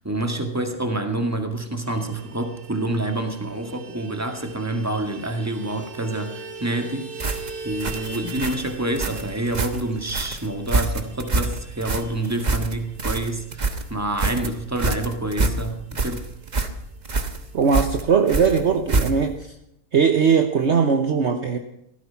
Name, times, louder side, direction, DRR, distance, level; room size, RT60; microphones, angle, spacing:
voice 1, 0.0-7.1 7.6-16.3, right 1 dB, 10° right, 5 dB, 1.9 m, -27 dB
Vehicle horn car horn honking, 1.8-15.7 16.0-16.1 16.4-16.6 16.9-17.6, right 4 dB, 75° right, 2.5 m, -41 dB
sound 1, 7.2-19.4, right 3 dB, 30° right, 1.1 m, -26 dB
voice 2, 17.5-19.5 19.9-21.6, right 6 dB, 50° right, 6 dB, 1.2 m, -19 dB
16.0 x 14.0 x 5.8 m, 0.78 s
omnidirectional pair, 1.6 m